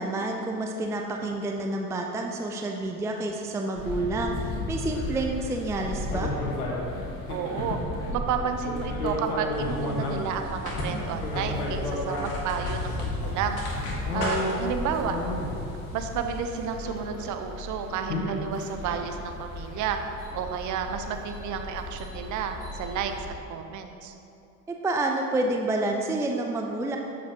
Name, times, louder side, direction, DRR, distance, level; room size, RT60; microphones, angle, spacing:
voice 1, 0.0-6.3 14.9-15.0 24.7-27.0, right 2 dB, 5° right, 2 dB, 0.5 m, -29 dB
sound 1, 3.7-23.3, left 2 dB, 70° left, 1.7 m, -33 dB
voice 2, 7.3-7.8 8.1-13.6 14.1-15.2 15.9-20.0 20.3-24.1, right 7 dB, 40° right, 6 dB, 0.9 m, -31 dB
sound 2, 9.5-16.7, left 1 dB, 50° left, 1.9 m, -38 dB
13.0 x 7.4 x 3.0 m, 2.7 s
figure-of-eight pair, 65°, 46 cm